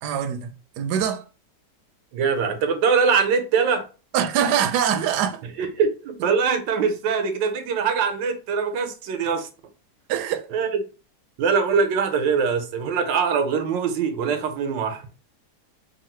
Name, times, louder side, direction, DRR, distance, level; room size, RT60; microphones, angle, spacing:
voice 1, 0.0-1.2 4.1-5.4 10.1-10.5 14.2-14.4, right 8 dB, 75° right, 1.1 m, -24 dB
voice 2, 2.1-3.8 5.6-9.5 10.5-10.7 11.4-15.0, right 6 dB, 90° right, 1.5 m, -22 dB
3.7 x 2.3 x 4.3 m
omnidirectional pair, 1.9 m